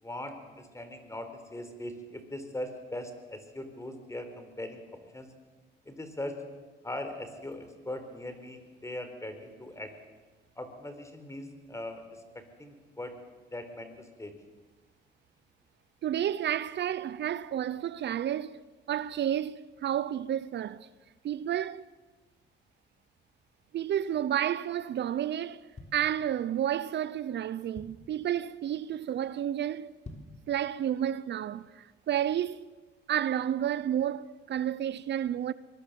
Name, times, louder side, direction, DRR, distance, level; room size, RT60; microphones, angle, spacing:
voice 1, 0.0-5.3 5.9-6.4 6.8-9.9 10.6-13.2 13.5-14.3, left 1 dB, 15° left, 4.3 m, -40 dB
voice 2, 16.0-18.6 18.9-20.9 21.2-21.9 23.7-29.9 30.5-32.7 33.1-35.5, right 10 dB, 60° right, 0.7 m, -31 dB
sound 1, 25.5-26.7 27.2-27.3 27.5-28.2 28.7-29.0 29.2-29.3 29.9-30.5 30.9-31.0, left 2 dB, 35° left, 3.5 m, -48 dB
24.0 x 21.5 x 7.6 m
cardioid pair, 90°, 20 cm